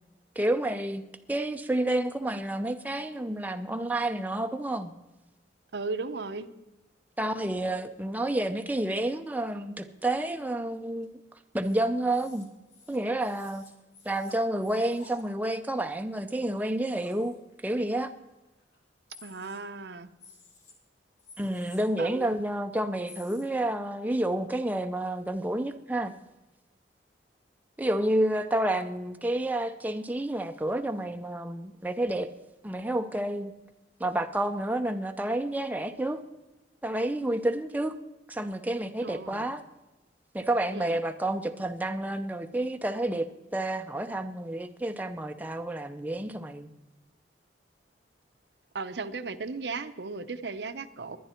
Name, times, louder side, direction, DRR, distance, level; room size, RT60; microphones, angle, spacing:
voice 1, 0.4-1.0 1.3-4.9 7.2-11.2 11.5-12.5 12.9-13.7 14.1-17.3 17.6-18.1 21.4-26.1 27.8-32.3 32.6-33.5 34.0-36.2 36.8-38.0 38.3-39.6 40.3-46.7, right 1 dB, 10° right, 0.6 m, -29 dB
voice 2, 5.7-6.5 19.2-20.1 22.0-22.3 39.0-39.4 40.7-40.9 48.7-51.2, right 4 dB, 70° right, 0.8 m, -36 dB
sound 1, 11.0-11.1 11.6-11.8 12.1-15.2 15.9-16.0 16.4-16.5 16.7-17.6 18.0-18.1 18.5-18.8 19.1-19.9 20.2-20.7 21.2-21.8 23.0-23.5, left 4 dB, 90° left, 3.5 m, -53 dB
22.0 x 10.0 x 4.4 m
head